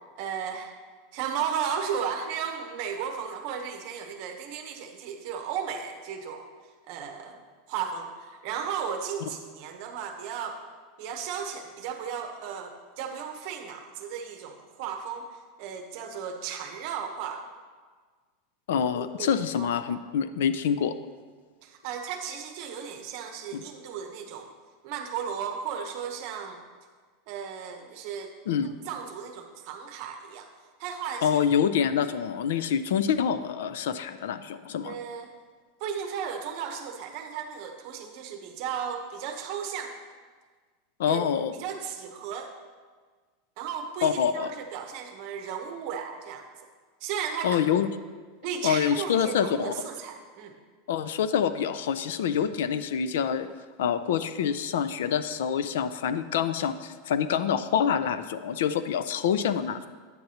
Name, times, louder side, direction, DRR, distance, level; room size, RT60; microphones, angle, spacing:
voice 1, 0.2-0.7 1.1-6.5 6.9-7.4 7.7-10.6 11.0-17.5 18.9-19.7 21.6-24.5 24.8-26.6 27.3-28.3 28.6-30.5 30.8-31.4 34.8-35.3 35.8-39.9 41.1-42.5 43.6-46.5 47.0-47.7 48.4-50.6, right 7 dB, 45° right, 5 dB, 0.8 m, -35 dB
voice 2, 18.7-20.9 23.5-23.6 28.5-28.7 31.2-35.0 41.0-41.5 44.0-44.5 47.4-47.9 48.6-49.7 50.9-53.5 53.8-59.9, left 8 dB, 90° left, 12 dB, 0.4 m, -26 dB
9.1 x 7.8 x 2.8 m, 1.5 s
supercardioid pair, 180°, 0 cm